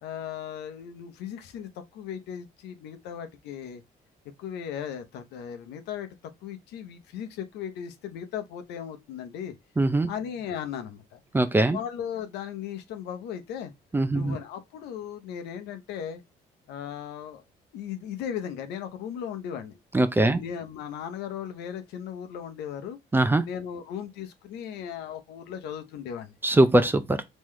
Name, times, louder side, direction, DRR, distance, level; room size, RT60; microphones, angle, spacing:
voice 1, 0.0-3.8 4.4-6.1 6.4-9.5 10.1-11.2 11.7-13.7 14.1-16.2 16.7-17.4 17.7-19.8 20.2-23.0 23.4-26.4, left 8 dB, 85° left, 0.9 m, -37 dB
voice 2, 9.8-10.1 11.3-11.8 13.9-14.4 19.9-20.4 23.1-23.4 26.4-27.2, right 2 dB, 10° right, 0.5 m, -21 dB
3.8 x 3.1 x 3.1 m
cardioid pair, 110°, 17 cm